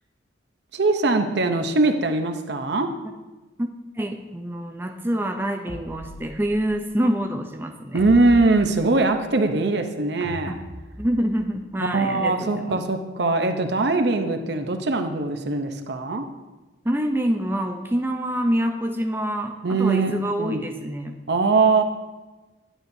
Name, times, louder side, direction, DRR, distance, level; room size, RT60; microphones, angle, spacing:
voice 1, 0.7-2.9 7.9-10.6 11.8-16.2 19.6-20.6 21.3-21.8, right 3 dB, 60° right, 6 dB, 0.7 m, -21 dB
voice 2, 4.0-8.0 10.5-10.6 11.0-12.8 16.8-21.1, equal, 10° right, 4 dB, 0.5 m, -26 dB
sound 1, 5.7-6.7 7.9-9.2 10.2-11.5, equal, 75° left, 1.2 m, -39 dB
11.0 x 9.0 x 2.7 m, 1.2 s
head